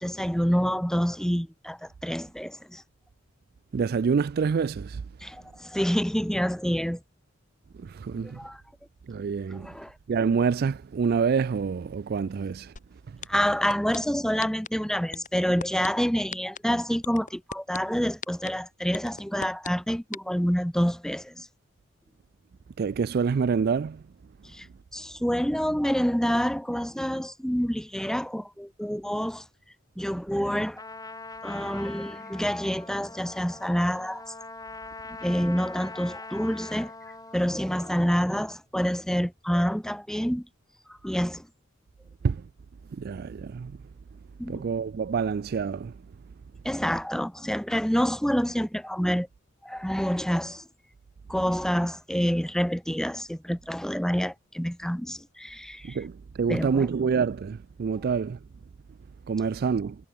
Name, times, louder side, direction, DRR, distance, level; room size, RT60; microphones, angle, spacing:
voice 1, 0.0-2.8 5.2-7.0 8.3-8.6 9.5-9.9 13.3-21.5 24.5-24.7 24.9-29.4 30.0-30.8 31.4-34.2 35.2-36.9 37.3-40.5 41.0-41.5 44.4-44.6 46.6-49.3 49.6-50.6 51.3-56.0 56.5-56.9, equal, 5° left, 1.5 m, -27 dB
voice 2, 3.7-5.0 7.8-8.4 9.1-9.7 10.1-12.7 22.8-24.0 42.2-42.4 43.0-43.7 44.5-45.9 55.9-56.1 56.4-58.4 59.3-60.0, right 5 dB, 50° right, 0.3 m, -26 dB
sound 1, 12.8-12.9 13.2-14.0 14.4-14.7 15.1-15.9 16.3-16.6 17.0-17.8 18.2-18.5 18.9-19.7 20.1-20.2, left 5 dB, 40° left, 3.0 m, -35 dB
Trumpet, 30.8-38.1, left 3 dB, 20° left, 4.4 m, -42 dB
head